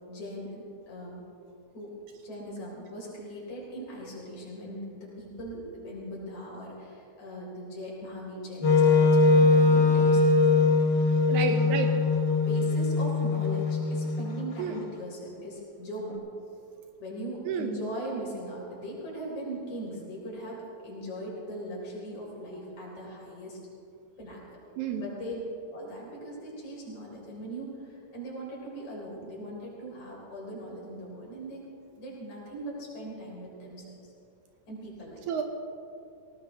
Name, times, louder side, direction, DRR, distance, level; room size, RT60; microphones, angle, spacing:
voice 1, 0.1-1.2 1.7-2.0 2.2-10.4 10.8-11.7 12.5-16.2 17.0-23.6 24.2-24.6 25.0-25.4 25.7-31.6 32.0-34.1 34.7-35.3, equal, 75° left, -4 dB, 5.3 m, -40 dB
Wind instrument woodwind instrument, 8.6-14.7, left 3 dB, 50° left, 1.6 m, -22 dB
voice 2, 11.3-11.9 14.6-14.8 17.5-17.8 24.8-25.1 35.3-35.4, right 8 dB, 80° right, 5 dB, 2.3 m, -31 dB
19.5 x 17.5 x 3.5 m, 2.6 s
omnidirectional pair, 3.4 m